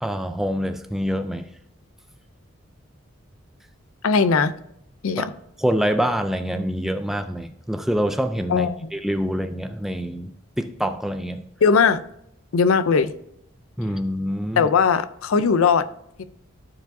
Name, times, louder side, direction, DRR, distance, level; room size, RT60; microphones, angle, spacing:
voice 1, 0.0-1.5 5.2-5.3 5.6-10.3 10.6-11.4 13.8-14.7, equal, ahead, 0.3 m, -25 dB
voice 2, 4.0-4.5 5.0-5.3 8.5-8.9 11.6-12.0 12.5-13.1 14.6-15.9 16.2-16.3, left 5 dB, 75° left, 0.5 m, -19 dB
13.0 x 4.6 x 2.6 m
head